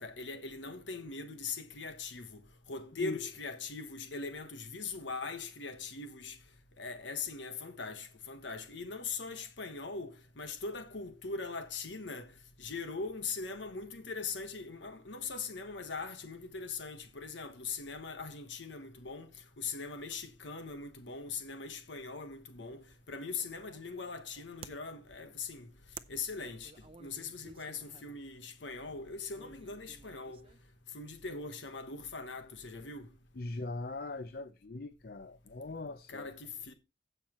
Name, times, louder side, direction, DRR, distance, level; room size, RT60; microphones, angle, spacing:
voice 1, 0.0-2.4 2.7-6.4 6.8-12.3 12.6-19.3 19.6-25.7 26.1-26.7 27.0-30.5 30.9-33.1 36.1-36.7, left 4 dB, 85° left, 1.2 m, -41 dB
sound 1, 22.5-30.8, right 5 dB, 30° right, 0.6 m, -56 dB
voice 2, 33.3-36.3, left 2 dB, 55° left, 0.6 m, -41 dB
16.0 x 5.8 x 3.1 m
head